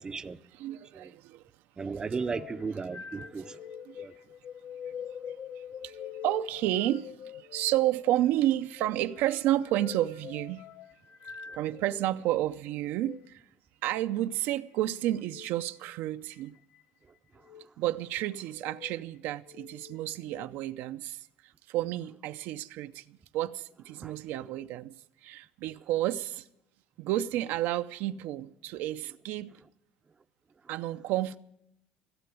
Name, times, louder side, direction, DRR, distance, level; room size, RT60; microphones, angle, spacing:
voice 1, 0.0-0.4 0.9-1.1 1.8-3.6 4.0-4.1 24.0-24.1, right 4 dB, 20° right, 0.5 m, -35 dB
voice 2, 0.5-1.4 2.0-2.1 3.4-4.1 5.6-10.6 11.5-13.4 13.8-16.5 17.8-24.9 25.2-26.5 27.0-29.5 30.7-31.4, right 14 dB, 75° right, 0.5 m, -31 dB
sound 1, 2.2-12.1 12.9-13.2 15.2-15.5 16.3-16.8 17.4-17.7 18.4-18.9 19.4-20.5, left 8 dB, 70° left, 0.9 m, -45 dB
16.0 x 7.7 x 9.2 m
cardioid pair, 125°, 3 cm